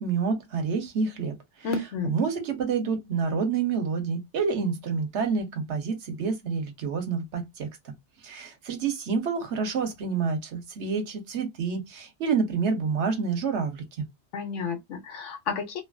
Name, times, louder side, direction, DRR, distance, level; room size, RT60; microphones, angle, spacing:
voice 1, 0.0-1.4 2.0-8.0 8.2-14.1, right 5 dB, 70° right, 1.1 m, -28 dB
voice 2, 1.6-2.1 14.3-15.8, left 5 dB, 90° left, 1.2 m, -31 dB
2.9 x 2.4 x 2.3 m
omnidirectional pair, 1.2 m